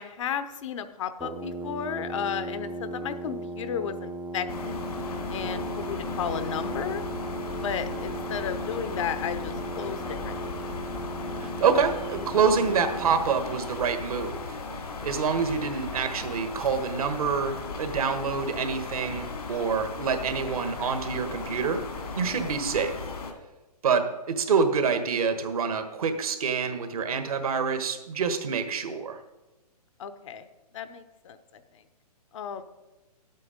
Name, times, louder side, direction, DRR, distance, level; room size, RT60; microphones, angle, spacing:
voice 1, 0.0-4.8 5.3-7.0 7.6-10.6 30.0-30.5 30.7-31.8 32.3-32.6, left 8 dB, 50° left, 10 dB, 0.9 m, -34 dB
Brass instrument, 1.2-13.5, right 2 dB, 10° right, 0.6 m, -37 dB
sound 1, 4.5-23.3, left 4 dB, 70° left, 2.2 m, -36 dB
voice 2, 11.4-14.5 15.0-21.8 22.1-23.0 23.8-29.2, right 5 dB, 65° right, 8 dB, 1.4 m, -27 dB
11.5 x 8.5 x 5.1 m, 1.1 s
hypercardioid pair, 130°, 20 cm